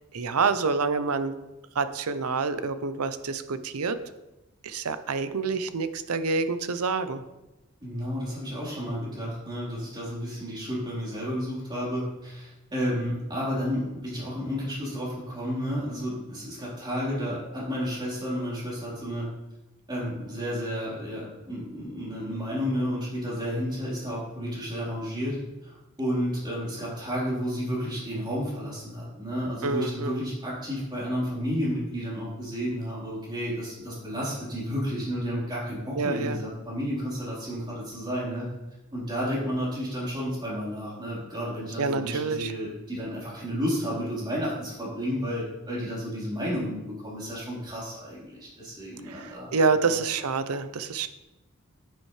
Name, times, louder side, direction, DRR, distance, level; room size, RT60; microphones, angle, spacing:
voice 1, 0.1-1.3 1.8-4.0 4.6-7.2 29.6-30.2 36.0-36.4 41.8-42.5 49.1-51.1, right 4 dB, 90° right, 11 dB, 0.7 m, -27 dB
voice 2, 7.8-19.3 19.9-25.4 25.6-38.5 38.9-49.9, equal, 20° right, -7 dB, 3.9 m, -31 dB
10.0 x 9.4 x 3.3 m, 1.0 s
head